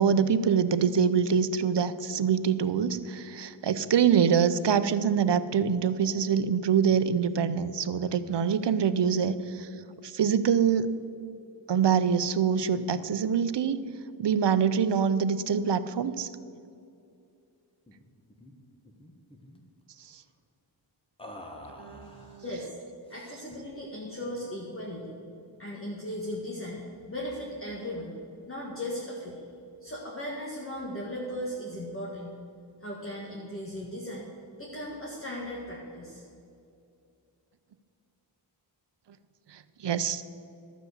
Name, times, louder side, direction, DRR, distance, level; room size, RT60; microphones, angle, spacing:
voice 1, 0.0-9.7 10.0-10.9 11.7-13.8 14.2-16.3 20.1-20.2 21.8-22.4 39.5-40.2, right 7 dB, 65° right, 13 dB, 0.7 m, -25 dB
sound 1, 17.9-18.0 18.3-18.5 18.8-19.6 21.2-22.4 23.1-23.7, left 1 dB, 10° left, 1.2 m, -47 dB
voice 2, 22.3-22.8 23.1-25.1 25.6-29.4 29.8-32.4 32.8-34.3 34.6-36.2, left 1 dB, 30° left, -3 dB, 1.6 m, -37 dB
12.5 x 7.0 x 8.1 m, 2.5 s
wide cardioid pair, 100°, 46 cm